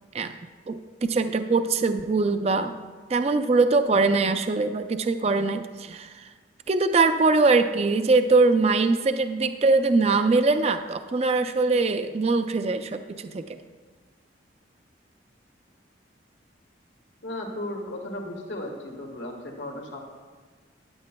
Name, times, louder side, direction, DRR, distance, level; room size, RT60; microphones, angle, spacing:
voice 1, 0.7-2.7 3.1-6.3 6.7-13.5, right 3 dB, 35° right, 9 dB, 0.4 m, -22 dB
voice 2, 17.2-20.0, left 1 dB, 80° left, 2 dB, 1.4 m, -35 dB
15.0 x 9.6 x 2.2 m, 1.5 s
head